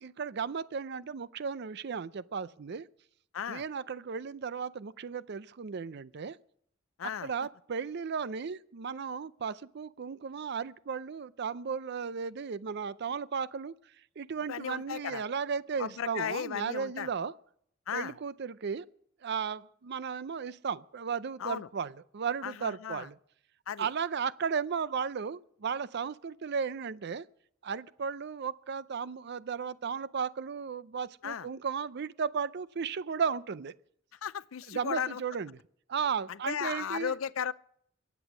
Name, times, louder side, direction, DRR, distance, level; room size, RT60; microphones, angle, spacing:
voice 1, 0.0-2.9 3.5-6.4 7.2-13.7 14.2-17.3 17.9-18.8 19.2-23.2 23.8-27.2 27.6-33.7 34.7-35.5 35.9-37.1, right 6 dB, 55° right, 0.5 m, -35 dB
voice 2, 7.0-7.3 14.5-15.2 15.8-17.1 17.9-18.1 21.4-21.7 22.4-23.1 23.7-23.9 31.2-31.5 34.2-35.2 36.3-37.5, left 8 dB, 85° left, 0.5 m, -35 dB
23.0 x 8.3 x 6.1 m
head